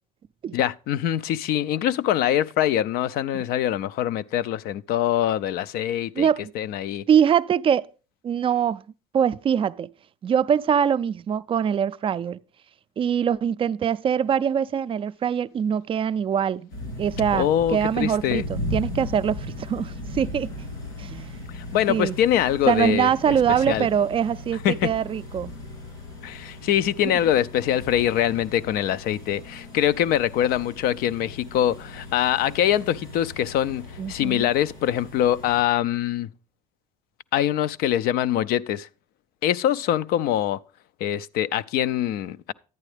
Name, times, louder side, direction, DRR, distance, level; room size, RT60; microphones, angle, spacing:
voice 1, 0.5-6.3 6.6-7.1 17.3-18.4 21.5-23.3 23.7-23.9 24.6-24.9 26.2-36.3 37.3-38.9 39.4-40.6 41.0-42.5, left 11 dB, 65° left, 0.4 m, -24 dB
voice 2, 6.2-6.5 7.1-7.9 8.2-8.8 9.1-9.9 10.2-12.4 13.0-16.7 17.0-20.5 21.0-21.4 21.9-22.2 22.7-25.5 27.0-27.1 34.0-34.5, right 8 dB, 35° right, 0.3 m, -23 dB
sound 1, 16.7-35.6, left 1 dB, 90° left, 3.9 m, -37 dB
10.5 x 9.0 x 3.3 m
supercardioid pair, 85°, 17 cm